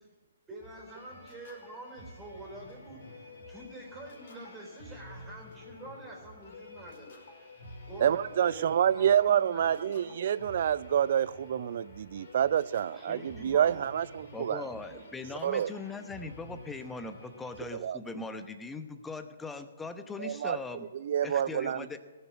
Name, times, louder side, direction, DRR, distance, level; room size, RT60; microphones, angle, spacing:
voice 1, 0.5-3.0 3.5-7.2 7.9-10.6 12.9-13.7, right 2 dB, 15° right, 4.2 m, -47 dB
sound 1, 0.6-17.7, left 2 dB, 55° left, 5.0 m, -50 dB
voice 2, 8.0-14.6 15.4-15.7 17.7-18.0 20.2-20.6 20.9-22.0, right 9 dB, 55° right, 0.4 m, -28 dB
voice 3, 14.3-20.9 21.2-22.0, left 3 dB, 10° left, 0.9 m, -40 dB
17.5 x 7.1 x 8.2 m
hypercardioid pair, 135°, 0 cm